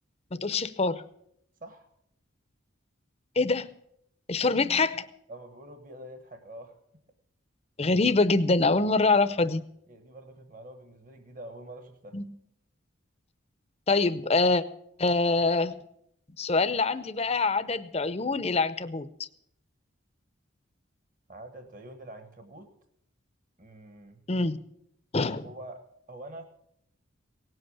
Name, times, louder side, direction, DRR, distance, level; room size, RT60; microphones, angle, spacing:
voice 1, 0.3-1.0 3.4-3.7 4.3-5.1 7.8-9.6 12.1-12.3 13.9-14.6 15.0-15.7 16.4-19.3 24.3-24.6 25.1-25.4, left 3 dB, 30° left, 13 dB, 0.7 m, -25 dB
voice 2, 5.3-6.8 9.9-12.2 21.3-22.7 23.6-24.2 25.4-26.4, right 1 dB, 40° right, 7 dB, 1.3 m, -45 dB
18.0 x 7.9 x 8.6 m, 0.74 s
head